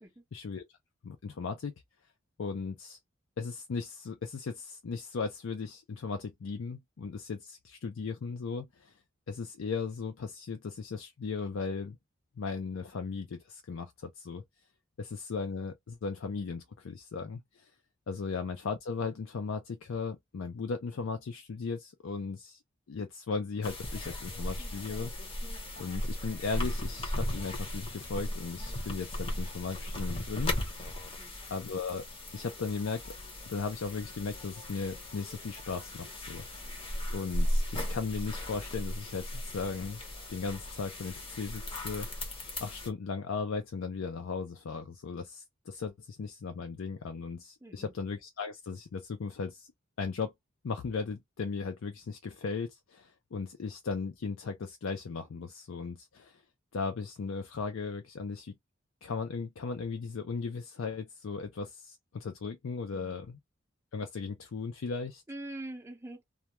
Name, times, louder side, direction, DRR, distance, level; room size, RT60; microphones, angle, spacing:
voice 1, 0.3-0.6 1.0-1.7 2.4-3.0 3.4-8.9 9.3-12.0 12.4-14.4 15.0-17.7 18.1-22.6 22.9-25.1 25.5-30.6 31.5-32.1 32.3-33.1 33.5-36.8 37.1-40.0 40.3-42.3 42.6-49.7 50.0-50.3 50.6-56.4 56.7-58.6 59.0-63.4 63.9-65.2, left 5 dB, 75° left, 0.4 m, -37 dB
sound 1, 23.6-42.9, left 1 dB, 25° left, 0.6 m, -37 dB
voice 2, 47.6-47.9 62.9-63.2 65.3-66.2, right 1 dB, 15° right, 0.5 m, -44 dB
2.2 x 2.2 x 2.9 m
head